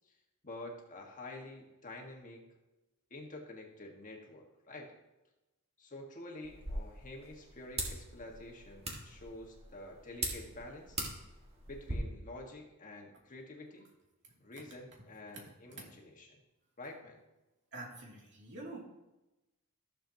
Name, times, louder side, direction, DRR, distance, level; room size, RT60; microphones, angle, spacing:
voice 1, 0.4-2.5 3.1-4.9 5.8-11.0 11.7-13.9 14.4-16.4 16.8-17.2, left 2 dB, 35° left, 1 dB, 1.6 m, -48 dB
sound 1, 6.4-11.9, right 2 dB, 30° right, 1.8 m, -42 dB
voice 2, 17.7-18.8, right 2 dB, 55° right, -3 dB, 2.7 m, -46 dB
14.5 x 7.2 x 2.9 m, 0.99 s
head